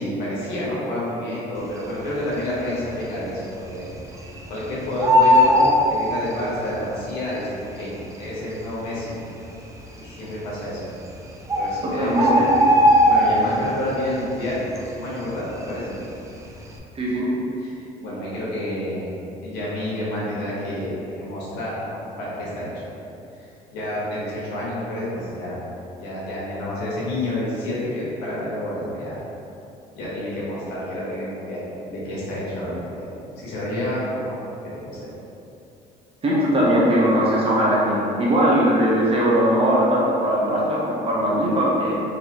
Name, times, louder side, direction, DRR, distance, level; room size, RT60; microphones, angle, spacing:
voice 1, 0.0-3.9 4.5-9.2 10.0-10.8 11.5-12.3 12.6-12.8 13.1-15.9 17.6-17.7 18.0-19.1 19.4-23.0 23.4-25.6 26.0-29.2 29.9-34.4 34.6-35.1, left 1 dB, 85° left, -8 dB, 1.5 m, -29 dB
Bird, 2.1-2.7 3.0-3.1 3.4-4.6 4.8-6.7 7.5-7.6 8.2-8.3 8.5-8.7 9.3-9.8 10.7-10.8 11.2-11.3 11.5-13.8 14.1-14.4 14.8-16.1 16.5-16.7, equal, 20° right, 0.4 m, -18 dB
voice 2, 11.8-12.5 16.9-17.3 36.2-41.9, equal, 35° right, -6 dB, 1.0 m, -20 dB
4.1 x 3.1 x 3.0 m, 2.7 s
cardioid pair, 110°, 17 cm